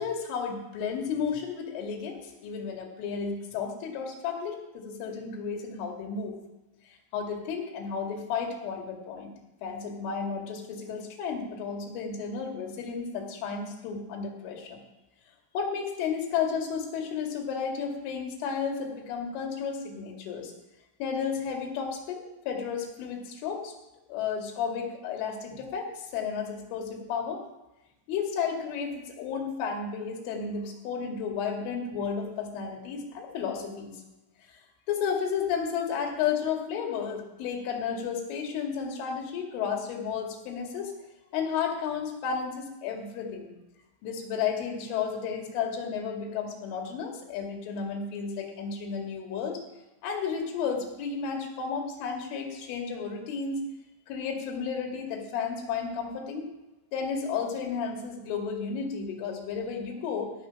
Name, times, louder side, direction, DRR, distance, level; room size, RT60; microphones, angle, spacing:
voice 1, 0.0-6.4 6.9-9.3 9.6-14.8 15.5-20.5 21.0-23.7 24.1-27.4 28.1-33.9 34.4-34.6 34.9-40.9 41.3-43.5 44.0-49.6 50.0-53.6 54.1-56.5 56.9-60.3, left 6 dB, 75° left, 2 dB, 4.4 m, -32 dB
17.0 x 8.3 x 5.7 m, 0.98 s
omnidirectional pair, 5.8 m